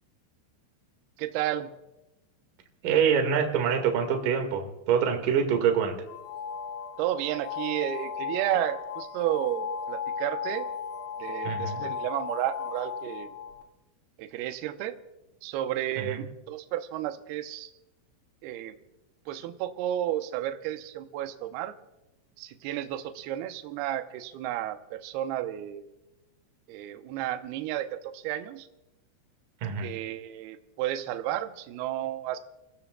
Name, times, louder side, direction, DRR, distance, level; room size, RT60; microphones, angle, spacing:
voice 1, 1.2-1.7 7.0-10.7 11.2-13.3 14.2-14.9 15.4-17.7 18.4-18.7 19.3-21.7 22.4-25.8 26.7-28.7 29.8-32.4, right 12 dB, 80° right, 7 dB, 2.3 m, -32 dB
voice 2, 2.8-5.9 11.4-11.8 16.0-16.2 29.6-29.9, right 7 dB, 55° right, 4 dB, 2.8 m, -25 dB
sound 1, 6.1-13.6, left 6 dB, 80° left, 1.2 m, -36 dB
29.0 x 18.0 x 2.3 m, 0.94 s
omnidirectional pair, 5.6 m